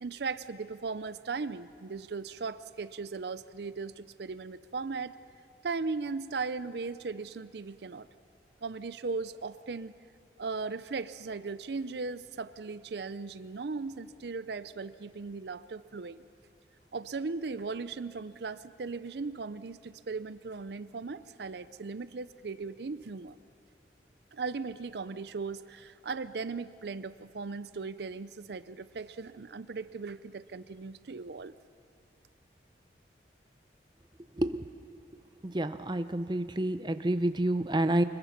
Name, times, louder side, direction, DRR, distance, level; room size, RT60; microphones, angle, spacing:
voice 1, 0.0-5.2 5.6-8.1 8.6-9.9 10.4-16.2 16.9-23.4 24.3-31.5, right 4 dB, 65° right, 14 dB, 0.5 m, -37 dB
voice 2, 35.5-38.0, right 1 dB, 25° right, 10 dB, 0.6 m, -28 dB
25.0 x 21.5 x 5.9 m, 2.4 s
head